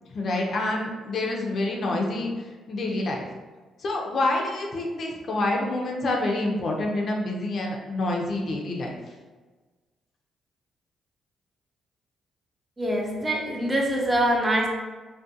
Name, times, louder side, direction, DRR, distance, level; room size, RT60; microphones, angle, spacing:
voice 1, 0.1-2.3 2.7-3.2 3.8-9.0, left 2 dB, 55° left, 0 dB, 0.4 m, -27 dB
voice 2, 12.8-14.7, right 1 dB, 15° right, -1 dB, 0.5 m, -24 dB
2.4 x 2.1 x 2.6 m, 1.3 s
cardioid pair, 90°, 0 cm